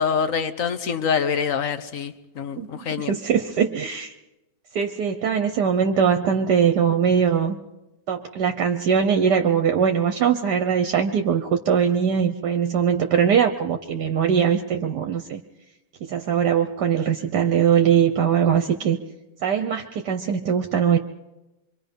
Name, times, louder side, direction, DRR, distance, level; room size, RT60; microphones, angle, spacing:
voice 1, 0.0-3.1, left 6 dB, 50° left, 11 dB, 1.3 m, -25 dB
voice 2, 3.0-4.1 4.7-7.6 8.1-15.4 16.0-19.0 19.4-21.0, right 7 dB, 70° right, 6 dB, 1.4 m, -21 dB
26.5 x 23.5 x 5.4 m, 0.98 s
omnidirectional pair, 1.9 m